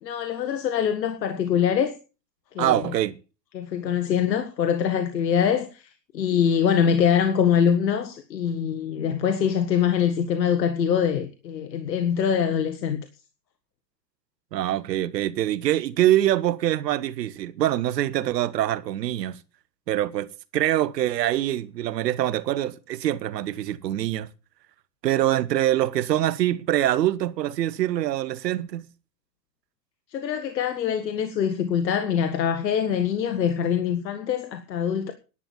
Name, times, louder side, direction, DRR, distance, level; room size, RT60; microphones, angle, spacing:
voice 1, 0.0-2.0 2.6-2.8 3.5-13.1 30.1-35.1, left 8 dB, 85° left, 1.8 m, -24 dB
voice 2, 2.6-3.2 14.5-19.4 19.9-20.3 20.5-24.3 25.0-28.9, right 13 dB, 80° right, 1.4 m, -24 dB
11.5 x 9.3 x 7.2 m
hypercardioid pair, 120°, 49 cm